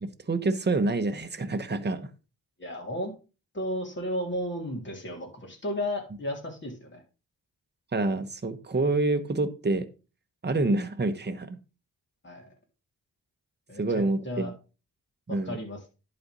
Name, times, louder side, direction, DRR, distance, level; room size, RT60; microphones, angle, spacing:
voice 1, 0.0-2.1 7.9-9.9 10.4-11.6 13.8-14.5 15.3-15.6, right 2 dB, 25° right, 7 dB, 1.2 m, -27 dB
voice 2, 2.6-3.1 3.5-7.0 12.2-12.5 13.7-14.5 15.3-15.8, equal, 30° left, 0 dB, 3.6 m, -34 dB
11.0 x 4.3 x 5.4 m, 0.32 s
cardioid pair, 70°, 37 cm